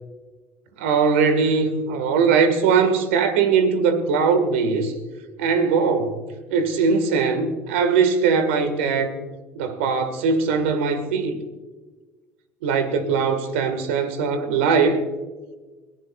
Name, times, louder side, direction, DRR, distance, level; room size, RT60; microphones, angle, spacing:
voice 1, 0.8-4.9 5.4-6.2 6.5-9.2 9.5-11.4 12.6-15.0, right 5 dB, 85° right, 1.7 m, -20 dB
22.5 x 15.5 x 2.4 m
supercardioid pair, 85°, 6 cm